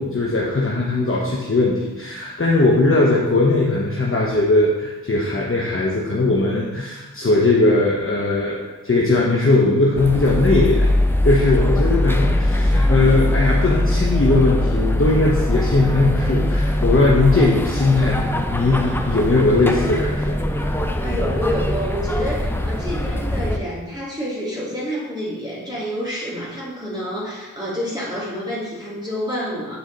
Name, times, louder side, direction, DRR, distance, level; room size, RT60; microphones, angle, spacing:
voice 1, 0.0-8.6 8.8-10.9 11.2-20.7, left 2 dB, 35° left, -3 dB, 1.0 m, -19 dB
sound 1, 10.0-23.6, left 1 dB, 5° left, 0.6 m, -21 dB
voice 2, 19.9-20.2 21.0-29.8, equal, 10° right, -9 dB, 2.4 m, -28 dB
8.7 x 4.3 x 4.0 m, 1.2 s
cardioid pair, 40°, 36 cm